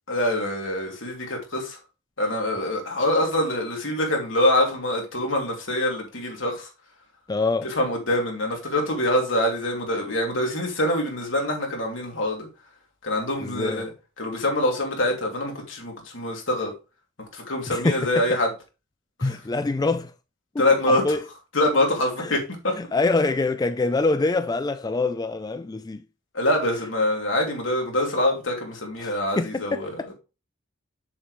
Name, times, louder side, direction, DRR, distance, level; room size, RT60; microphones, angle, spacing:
voice 1, 0.1-1.8 2.2-6.7 7.6-12.5 13.0-13.9 14.2-16.7 17.3-18.5 19.2-19.4 20.6-21.0 21.5-22.7 26.3-30.1, left 1 dB, 75° left, 2.9 m, -25 dB
voice 2, 7.3-7.7 13.4-13.9 17.7-18.4 19.2-20.1 20.5-21.2 22.2-22.3 22.8-26.0 29.0-30.1, left 3 dB, 20° left, 0.4 m, -25 dB
7.1 x 7.0 x 3.2 m
head